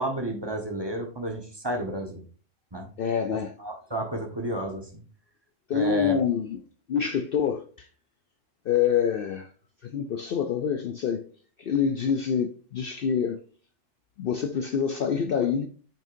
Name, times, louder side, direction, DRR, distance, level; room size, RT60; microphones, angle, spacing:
voice 1, 0.0-2.2 2.7-2.9 3.6-5.0 5.7-6.2, right 1 dB, 20° right, 1.1 m, -31 dB
voice 2, 3.0-3.6 5.7-6.6 6.9-7.9 8.7-9.5 9.8-11.3 11.6-13.4 14.2-15.7, left 7 dB, 60° left, 0.6 m, -26 dB
8.6 x 6.4 x 2.6 m
omnidirectional pair, 1.3 m